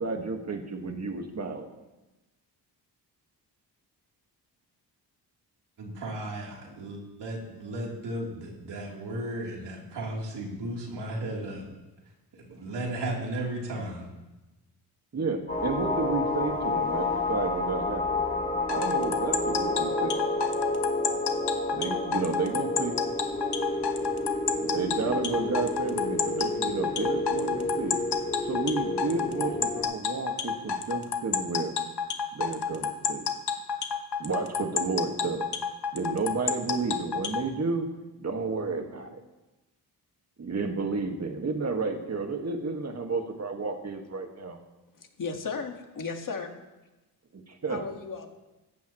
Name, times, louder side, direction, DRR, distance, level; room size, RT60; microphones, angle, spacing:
voice 1, 0.0-1.7 15.1-18.2 18.7-20.2 21.7-23.0 24.6-28.0 28.4-31.7 32.3-33.3 34.2-35.5 35.9-37.9 38.2-39.2 40.4-44.6 47.3-47.8, right 4 dB, 40° right, 4 dB, 1.9 m, -31 dB
voice 2, 5.8-11.7 12.3-14.1, right 1 dB, 85° right, -2 dB, 3.6 m, -35 dB
sound 1, 15.5-29.8, left 2 dB, 25° left, 3.9 m, -30 dB
sound 2, 18.7-37.4, left 6 dB, 75° left, 1.3 m, -29 dB
voice 3, 45.2-46.5 47.7-48.3, left 4 dB, 50° left, 4 dB, 1.9 m, -34 dB
17.0 x 14.5 x 3.1 m, 1.1 s
cardioid pair, 90°, 40 cm